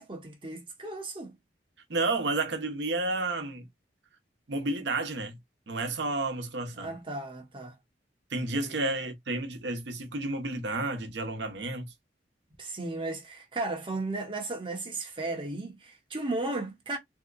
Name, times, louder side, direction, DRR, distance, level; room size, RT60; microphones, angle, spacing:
voice 1, 0.0-1.3 6.8-7.8 8.5-8.7 12.6-17.0, right 2 dB, 30° right, 0.8 m, -35 dB
voice 2, 1.9-3.7 4.5-5.4 5.7-6.9 8.3-11.9, right 2 dB, 70° right, 0.8 m, -31 dB
3.4 x 2.7 x 2.5 m
head